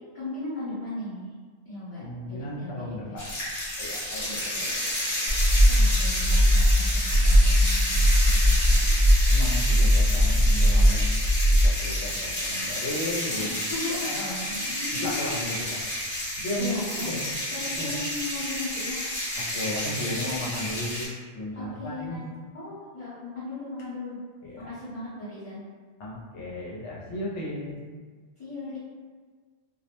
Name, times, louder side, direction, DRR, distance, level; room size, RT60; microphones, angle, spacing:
voice 1, 0.1-1.3 1.6-2.0 2.6-3.2 4.5-8.9 13.4-15.1 15.5-15.7 16.6-17.2 17.5-19.0 21.5-22.3 22.5-24.2 24.7-25.6 28.4-28.8, left 2 dB, 35° left, -13 dB, 0.7 m, -37 dB
voice 2, 2.0-3.4 3.8-4.8 5.8-5.9 9.3-11.1 11.5-13.5 13.9-14.5 15.0-17.3 17.8-17.9 19.4-22.2 24.4-24.7 26.0-27.8, left 1 dB, 80° left, -5 dB, 0.9 m, -35 dB
sound 1, 3.2-21.1, left 1 dB, 50° left, 1.1 m, -31 dB
sound 2, 5.3-11.7, equal, 60° right, 0.7 m, -20 dB
2.4 x 2.0 x 2.9 m, 1.5 s
omnidirectional pair, 1.2 m